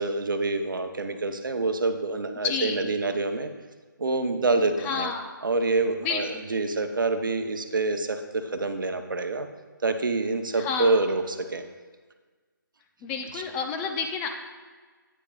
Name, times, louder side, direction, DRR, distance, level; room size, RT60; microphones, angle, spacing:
voice 1, 0.0-3.5 4.0-5.1 5.4-9.5 9.8-11.6 13.3-13.4, right 3 dB, 70° right, 7 dB, 0.9 m, -26 dB
voice 2, 2.4-2.9 4.8-5.2 6.0-6.4 10.5-10.9 13.0-14.3, left 5 dB, 15° left, 4 dB, 0.5 m, -30 dB
9.9 x 8.8 x 2.4 m, 1.4 s
figure-of-eight pair, 155°, 11 cm